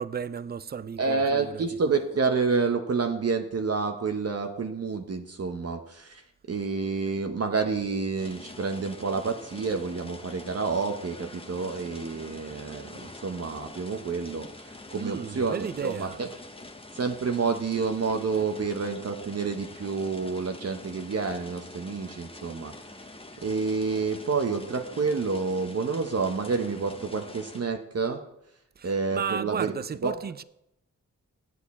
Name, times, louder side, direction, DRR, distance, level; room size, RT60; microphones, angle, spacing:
voice 1, 0.0-1.7 14.9-16.2 28.8-30.4, right 7 dB, 30° right, 0.4 m, -34 dB
voice 2, 1.0-6.2 6.5-16.3 16.9-22.7 23.4-28.2 28.8-29.7 30.0-30.1, right 4 dB, 50° right, 0.9 m, -29 dB
sound 1, 8.2-27.6, left 2 dB, 15° left, 0.9 m, -45 dB
8.5 x 8.0 x 4.2 m
cardioid pair, 50°, 32 cm